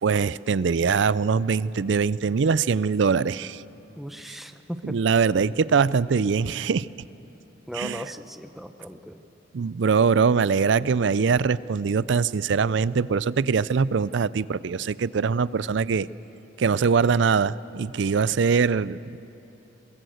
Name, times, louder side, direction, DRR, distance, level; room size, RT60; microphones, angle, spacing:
voice 1, 0.0-3.6 4.8-6.9 7.7-8.0 9.5-16.1 16.6-19.2, right 5 dB, 70° right, 19 dB, 0.4 m, -22 dB
voice 2, 4.0-5.0 7.7-9.2, equal, ahead, 8 dB, 0.7 m, -37 dB
23.0 x 21.0 x 7.9 m, 2.9 s
head